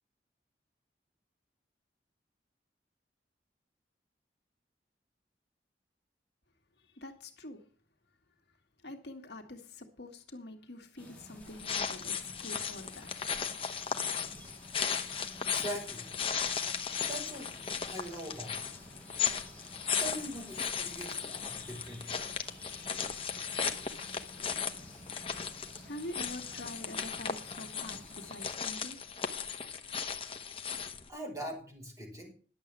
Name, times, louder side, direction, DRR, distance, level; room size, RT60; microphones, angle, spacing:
voice 1, 6.9-7.6 8.8-12.1 12.4-13.1 25.8-29.0, left 1 dB, 70° left, 1.8 m, -45 dB
sound 1, 11.0-28.6, left 1 dB, 10° left, 3.8 m, -52 dB
sound 2, 11.4-31.1, left 7 dB, 30° left, 1.0 m, -36 dB
voice 2, 15.4-16.0 17.0-17.5 17.8-18.7 20.0-22.2 31.1-32.3, right 1 dB, 20° right, 4.8 m, -42 dB
11.0 x 7.3 x 7.4 m
head